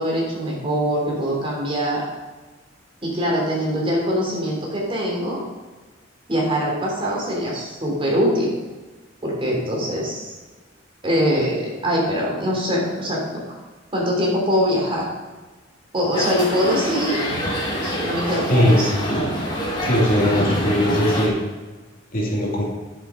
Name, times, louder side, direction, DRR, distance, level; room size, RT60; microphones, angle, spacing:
voice 1, 0.0-2.0 3.0-5.4 6.3-8.5 9.2-10.3 11.0-13.4 13.9-15.0 15.9-17.2 17.8-18.9, equal, 30° right, -3 dB, 3.6 m, -23 dB
sound 1, 16.1-21.3, equal, 25° left, 2.8 m, -25 dB
voice 2, 18.5-18.8 19.8-21.4 22.1-22.6, equal, 50° left, -3 dB, 2.9 m, -19 dB
10.0 x 7.7 x 5.2 m, 1.3 s
head